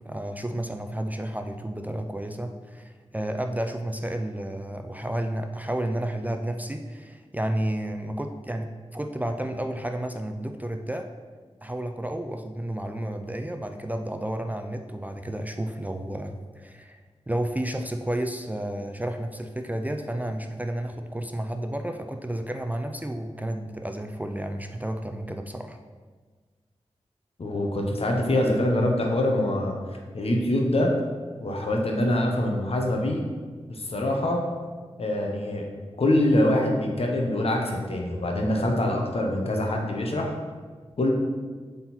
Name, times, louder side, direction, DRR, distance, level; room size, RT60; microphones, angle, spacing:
voice 1, 0.0-11.1 11.6-17.0 17.3-25.8, right 1 dB, 15° right, 5 dB, 0.4 m, -31 dB
voice 2, 27.4-29.8 30.1-30.9 31.4-33.2 33.7-34.4 35.0-35.7 36.0-40.3 41.0-41.1, left 1 dB, 60° left, 1 dB, 1.2 m, -24 dB
8.0 x 4.0 x 4.4 m, 1.5 s
wide cardioid pair, 75°, 11 cm